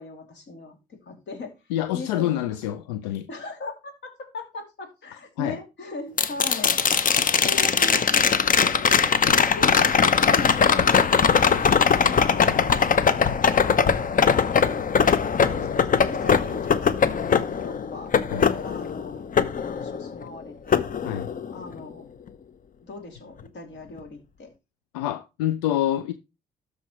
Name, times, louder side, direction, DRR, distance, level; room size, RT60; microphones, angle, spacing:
voice 1, 0.0-1.5 1.9-2.4 3.3-9.2 9.6-15.1 15.4-18.1 18.6-19.2 19.6-20.8 21.5-22.1 22.8-24.5, left 3 dB, 60° left, 2.7 m, -39 dB
voice 2, 1.7-3.3 5.4-5.6 15.5-15.7 18.3-18.4 21.0-21.3 24.9-26.1, left 12 dB, 90° left, 0.4 m, -27 dB
sound 1, 6.2-20.3 20.7-21.7 24.0-24.1, left 6 dB, 40° left, 0.8 m, -21 dB
13.0 x 4.9 x 3.1 m
hypercardioid pair, 50°, 21 cm